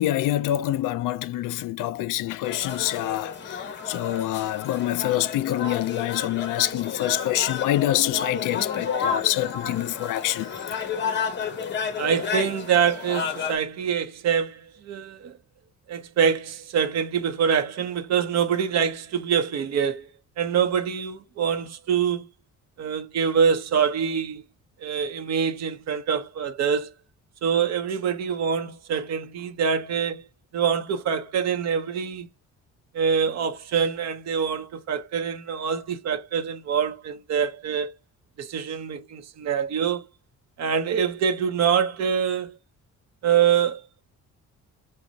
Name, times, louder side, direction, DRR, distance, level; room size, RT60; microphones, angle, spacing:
voice 1, 0.0-10.5, left 14 dB, 85° left, 0.5 m, -26 dB
sound 1, 2.4-13.6, left 6 dB, 35° left, 0.8 m, -31 dB
voice 2, 12.0-15.3 15.9-20.1 20.4-22.3 22.8-24.4 24.8-26.9 27.4-30.2 30.5-32.3 32.9-37.9 38.4-40.1 40.6-42.5 43.2-43.8, right 7 dB, 60° right, 0.8 m, -25 dB
6.0 x 2.2 x 2.7 m
cardioid pair, 165°, 31 cm